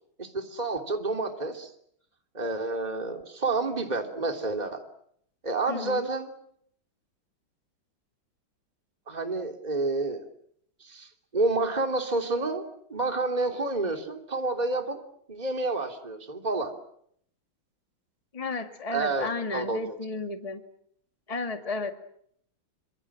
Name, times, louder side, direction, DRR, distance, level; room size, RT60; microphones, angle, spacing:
voice 1, 0.2-1.7 2.3-4.8 5.4-6.3 9.1-10.2 10.8-12.6 12.9-15.0 15.3-16.7 18.9-20.0, right 3 dB, 20° right, 4 dB, 3.2 m, -29 dB
voice 2, 5.7-6.1 18.3-20.6 21.3-21.9, left 3 dB, 20° left, 6 dB, 1.9 m, -33 dB
27.5 x 26.0 x 7.5 m, 0.69 s
omnidirectional pair, 2.2 m